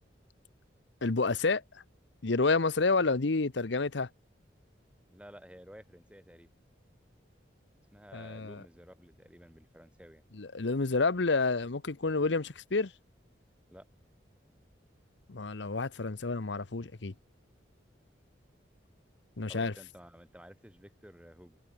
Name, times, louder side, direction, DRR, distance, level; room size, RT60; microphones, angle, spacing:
voice 1, 1.0-1.6 2.2-4.1 8.1-8.6 10.3-12.9 15.3-17.1 19.4-19.7, left 3 dB, 70° left, 0.9 m, -29 dB
voice 2, 5.1-6.5 7.9-10.3 13.7-13.9 19.5-21.6, equal, 5° right, 3.5 m, -53 dB
head